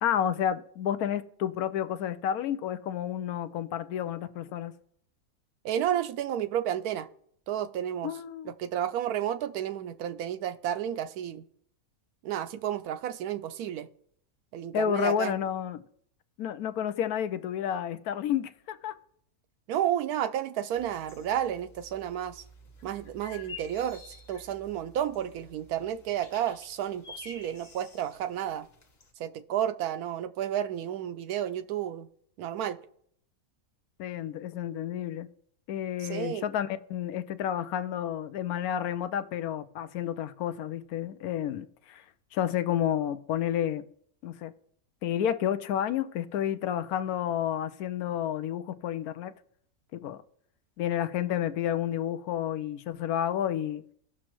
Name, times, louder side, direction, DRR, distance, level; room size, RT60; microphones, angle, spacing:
voice 1, 0.0-4.7 8.0-8.5 14.7-15.8 16.4-18.9 34.0-35.3 35.7-42.0 42.3-43.9 44.2-44.5 45.0-49.3 49.9-50.2 50.8-53.8, left 10 dB, 85° left, 1.1 m, -30 dB
voice 2, 5.6-7.1 7.5-8.1 8.4-11.4 12.2-13.9 14.5-15.4 19.7-22.4 22.8-24.0 24.3-28.7 29.2-32.1 32.4-32.8 36.0-36.5, right 10 dB, 85° right, 1.1 m, -31 dB
sound 1, 20.7-29.1, left 3 dB, 35° left, 1.1 m, -50 dB
17.5 x 6.2 x 3.0 m
omnidirectional pair, 1.5 m